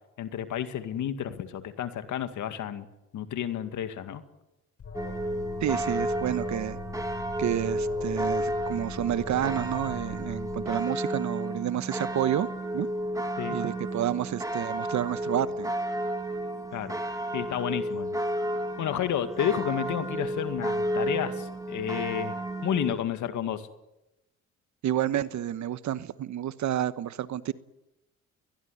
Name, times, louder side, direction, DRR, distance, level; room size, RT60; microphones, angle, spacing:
voice 1, 0.2-2.9 3.1-4.2 13.4-13.6 16.7-17.0 17.3-18.2 18.8-22.4 22.6-23.6, left 10 dB, 75° left, 2.1 m, -31 dB
Alarm, 4.8-10.6, left 4 dB, 50° left, 7.3 m, -41 dB
sound 1, 4.9-22.9, right 1 dB, 10° right, 2.6 m, -32 dB
voice 2, 5.6-6.8 7.4-12.5 12.7-12.9 13.5-15.7 24.8-27.5, right 11 dB, 70° right, 1.2 m, -29 dB
22.5 x 21.0 x 9.8 m
cardioid pair, 90°, 30 cm